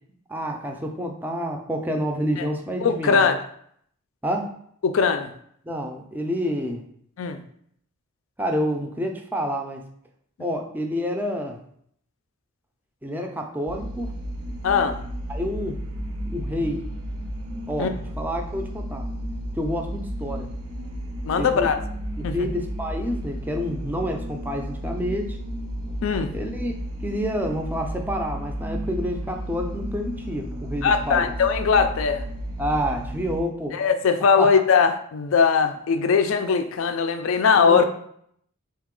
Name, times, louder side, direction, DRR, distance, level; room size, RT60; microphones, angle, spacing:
voice 1, 0.3-3.3 4.2-4.5 5.6-6.8 8.4-9.9 10.4-11.6 13.0-14.2 15.3-15.8 16.3-16.9 17.7-19.0 19.5-20.5 21.4-21.7 22.2-25.4 26.3-26.7 27.0-31.3 32.6-33.8 34.4-34.5 37.5-37.8, equal, 10° right, 3 dB, 0.4 m, -28 dB
voice 2, 2.8-3.4 4.8-5.3 7.2-7.4 14.6-15.0 17.8-17.9 21.2-21.8 22.2-22.5 26.0-26.3 30.8-32.3 33.7-37.8, left 5 dB, 65° left, 8 dB, 0.4 m, -20 dB
sound 1, 13.7-33.4, equal, 80° right, 0.6 m, -33 dB
3.9 x 2.8 x 3.7 m, 0.66 s
head